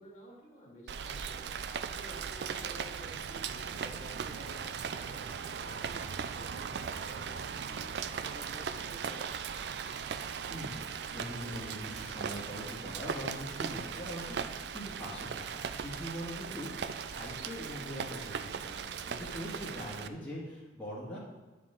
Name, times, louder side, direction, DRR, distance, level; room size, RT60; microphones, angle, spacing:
voice 1, 0.0-1.6 1.9-7.8 8.1-9.6 16.4-16.7 19.6-19.8, equal, 40° left, -5 dB, 2.3 m, -52 dB
Rain, 0.9-20.1, right 6 dB, 65° right, 0.4 m, -38 dB
voice 2, 10.5-21.2, equal, 5° left, -9 dB, 2.0 m, -42 dB
10.0 x 4.7 x 3.7 m, 1.2 s
head